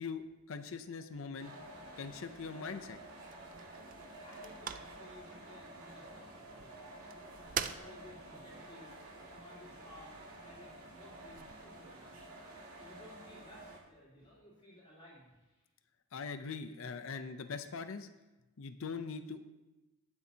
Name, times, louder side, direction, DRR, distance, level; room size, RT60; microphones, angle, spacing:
voice 1, 0.0-1.5 2.0-3.0 16.1-18.1 18.6-19.4, left 5 dB, 70° left, 9 dB, 0.5 m, -42 dB
sound 1, 1.4-13.8, right 1 dB, 85° right, 2.2 m, -51 dB
sound 2, 1.8-11.6, right 8 dB, 40° right, 0.4 m, -47 dB
voice 2, 3.9-6.7 7.3-8.9 9.3-12.1 12.7-15.7, left 1 dB, 30° left, -8 dB, 3.3 m, -57 dB
19.5 x 7.0 x 2.8 m, 1.1 s
head